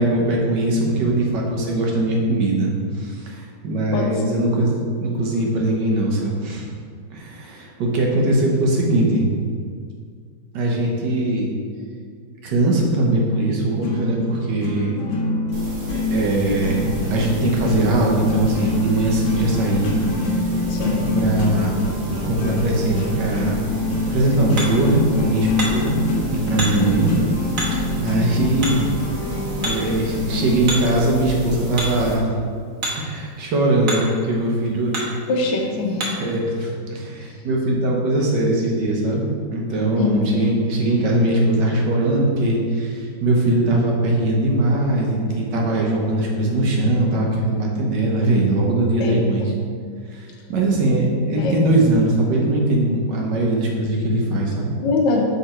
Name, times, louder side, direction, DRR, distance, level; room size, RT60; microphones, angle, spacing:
voice 1, 0.0-6.7 7.1-9.3 10.5-11.5 12.4-15.0 15.9-19.9 20.8-21.8 22.2-23.6 24.1-26.0 26.3-27.1 27.5-28.8 29.6-32.3 33.0-34.9 36.2-49.5 50.1-54.8, right 1 dB, 65° right, -1 dB, 1.6 m, -21 dB
voice 2, 3.9-4.4 20.7-21.1 35.3-36.1 39.9-40.2 49.0-49.5 51.4-51.7 54.8-55.2, left 3 dB, 75° left, 0 dB, 1.4 m, -23 dB
sound 1, 13.8-30.8, left 2 dB, 55° left, 0.9 m, -25 dB
sound 2, 15.5-32.1, right 1 dB, 85° right, 2.1 m, -32 dB
Hammer, 23.7-36.4, right 1 dB, 50° right, 1.4 m, -33 dB
6.7 x 3.6 x 4.3 m, 2.1 s
omnidirectional pair, 2.1 m